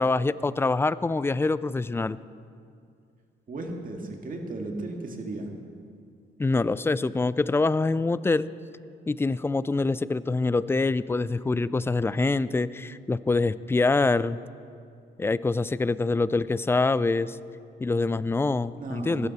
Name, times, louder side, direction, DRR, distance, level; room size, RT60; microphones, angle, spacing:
voice 1, 0.0-2.2 6.4-8.5 9.1-14.4 15.2-17.4 17.8-19.3, left 3 dB, 10° left, 17 dB, 0.3 m, -25 dB
voice 2, 3.5-5.5 18.8-19.3, right 2 dB, 45° right, 2 dB, 2.0 m, -35 dB
16.0 x 12.0 x 4.2 m, 2.3 s
cardioid pair, 90°, 20 cm